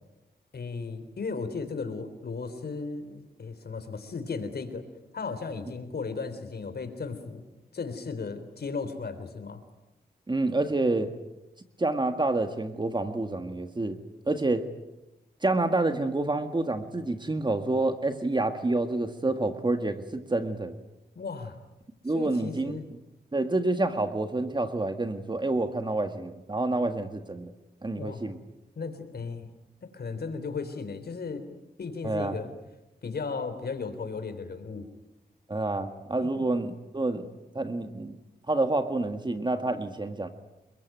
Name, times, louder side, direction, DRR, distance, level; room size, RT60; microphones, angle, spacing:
voice 1, 0.5-4.9 5.1-7.4 7.7-9.6 21.2-21.6 22.1-22.9 27.9-28.2 28.8-29.5 29.8-31.5 31.8-32.5 33.0-34.9 36.2-36.5, left 4 dB, 65° left, 10 dB, 3.7 m, -35 dB
voice 2, 10.3-11.1 11.8-14.0 14.3-14.7 15.4-20.8 22.0-22.8 23.3-27.5 27.8-28.4 32.0-32.4 35.5-38.2 38.5-40.3, right 2 dB, 25° right, 7 dB, 1.8 m, -28 dB
29.0 x 22.0 x 9.2 m, 0.96 s
wide cardioid pair, 105°, 17 cm